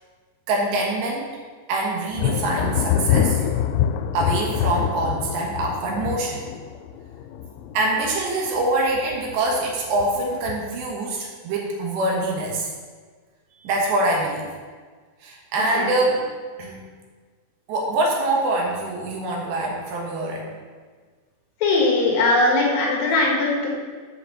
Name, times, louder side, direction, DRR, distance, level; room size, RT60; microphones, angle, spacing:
voice 1, 0.5-1.3 1.7-3.5 4.1-6.5 7.7-12.7 13.6-14.5 15.2-16.2 16.6-16.8 17.7-20.5, right 2 dB, 70° right, -2 dB, 3.4 m, -24 dB
Thunder, 2.1-8.6 9.0-9.5 10.0-10.8, left 9 dB, 85° left, 3.0 m, -25 dB
voice 2, 15.6-15.9 21.6-23.7, left 2 dB, 60° left, -2 dB, 2.7 m, -20 dB
7.6 x 4.8 x 7.0 m, 1.5 s
omnidirectional pair, 5.4 m